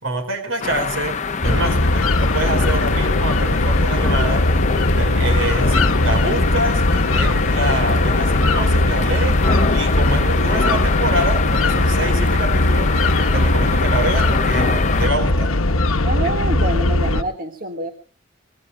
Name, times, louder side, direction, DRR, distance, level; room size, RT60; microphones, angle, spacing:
voice 1, 0.0-6.8 7.1-15.6, right 1 dB, 70° right, 4.9 m, -26 dB
sound 1, 0.6-15.1, left 5 dB, 35° left, 0.7 m, -25 dB
sound 2, 1.4-17.2, left 2 dB, 90° left, 1.1 m, -19 dB
sound 3, 1.4-10.4, left 1 dB, 15° left, 1.6 m, -33 dB
voice 2, 16.0-17.9, right 2 dB, 45° right, 1.7 m, -27 dB
25.5 x 20.0 x 2.2 m
head